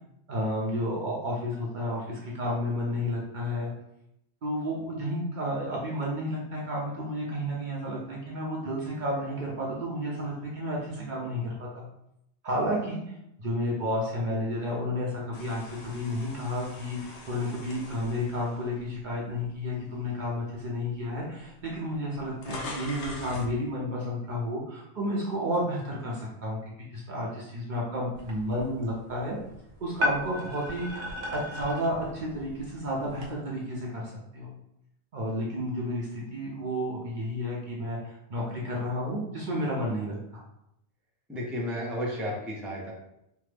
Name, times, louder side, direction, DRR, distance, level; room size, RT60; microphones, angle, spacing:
voice 1, 0.3-3.7 4.4-11.8 12.4-13.0 13.4-26.6 26.9-29.4 29.8-31.0 31.3-34.5 35.1-40.4, equal, 50° right, -4 dB, 0.7 m, -31 dB
sound 1, 15.3-19.6 20.1-20.3 21.2-21.3 21.5-23.6, left 2 dB, 85° left, 0.9 m, -43 dB
sound 2, 28.1-33.3, left 1 dB, 90° right, 1.1 m, -36 dB
voice 2, 41.3-42.9, equal, ahead, -4 dB, 0.5 m, -32 dB
3.3 x 2.0 x 3.3 m, 0.81 s
omnidirectional pair, 1.1 m